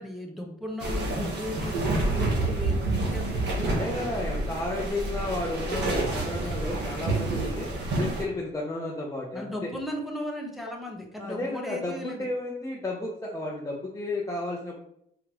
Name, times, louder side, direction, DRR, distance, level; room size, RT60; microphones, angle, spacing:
voice 1, 0.0-3.8 9.3-12.3, left 1 dB, ahead, -1 dB, 1.1 m, -36 dB
sound 1, 0.8-8.2, right 2 dB, 60° right, 1.6 m, -28 dB
voice 2, 3.6-7.7 8.0-9.7 11.2-14.8, left 2 dB, 15° left, -3 dB, 0.8 m, -33 dB
4.7 x 3.5 x 3.0 m, 0.74 s
cardioid pair, 90°, 20 cm